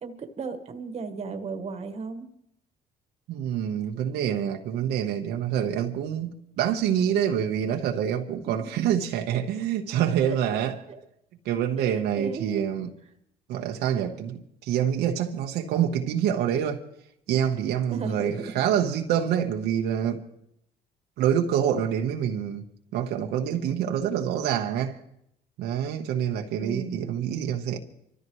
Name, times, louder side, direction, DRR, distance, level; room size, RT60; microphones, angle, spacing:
voice 1, 0.0-2.3 8.5-8.7 10.2-11.0 11.8-12.7 17.9-18.6 26.6-27.0, right 4 dB, 40° right, 1.6 m, -36 dB
voice 2, 3.3-6.3 6.6-10.8 11.4-12.9 13.5-16.8 17.3-20.2 21.2-22.6 22.9-25.0 25.6-27.8, right 9 dB, 80° right, 1.1 m, -26 dB
26.0 x 14.0 x 3.1 m
cardioid pair, 110°, 17 cm